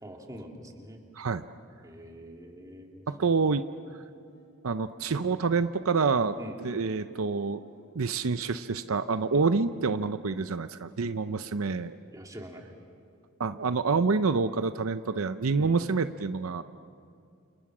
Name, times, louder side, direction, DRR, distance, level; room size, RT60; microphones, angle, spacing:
voice 1, 0.0-1.0 1.8-3.0 6.4-6.6 9.3-9.4 12.1-12.6 15.6-15.8, equal, 15° right, 1 dB, 2.7 m, -44 dB
voice 2, 1.2-1.5 3.1-3.6 4.6-6.4 6.6-7.6 7.9-12.0 13.4-16.6, right 4 dB, 80° right, 11 dB, 0.7 m, -27 dB
sound 1, 4.0-11.1, right 1 dB, 65° left, 7.4 m, -58 dB
sound 2, 6.2-12.1, left 1 dB, 25° left, 5.4 m, -60 dB
29.0 x 29.0 x 6.2 m, 2.4 s
head